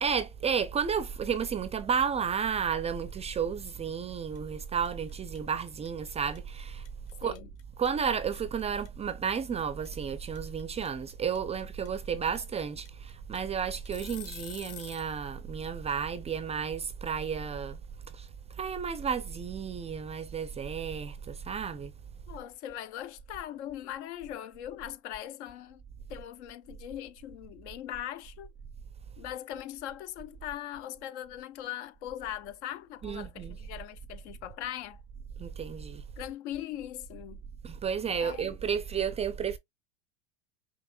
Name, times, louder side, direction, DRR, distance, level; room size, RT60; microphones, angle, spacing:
voice 1, 0.0-6.9 7.2-7.4 7.8-17.8 18.1-18.3 18.6-21.9 33.0-33.6 35.4-36.0 37.6-39.6, right 7 dB, 20° right, 0.4 m, -32 dB
sound 1, 3.8-4.1 4.3-15.1, left 10 dB, 40° left, 1.4 m, -47 dB
voice 2, 22.3-25.8 26.1-28.5 29.2-35.0 36.2-37.4 38.2-38.6, left 12 dB, 65° left, 0.8 m, -40 dB
5.5 x 2.9 x 2.3 m
hypercardioid pair, 100°, 37 cm